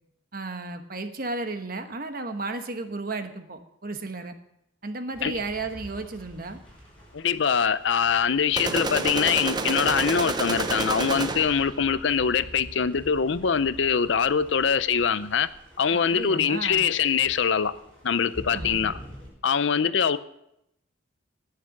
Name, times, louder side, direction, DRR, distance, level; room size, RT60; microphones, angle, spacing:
voice 1, 0.3-4.3 4.8-6.6 15.9-16.9 18.5-18.9, right 3 dB, 45° right, 1.1 m, -34 dB
sound 1, 5.1-19.3, equal, 5° left, 5.4 m, -46 dB
voice 2, 7.1-15.5 15.8-17.7 18.0-19.0 19.4-20.2, left 6 dB, 65° left, 0.6 m, -23 dB
sound 2, 8.6-11.7, right 3 dB, 20° right, 0.7 m, -28 dB
18.5 x 6.7 x 6.1 m
head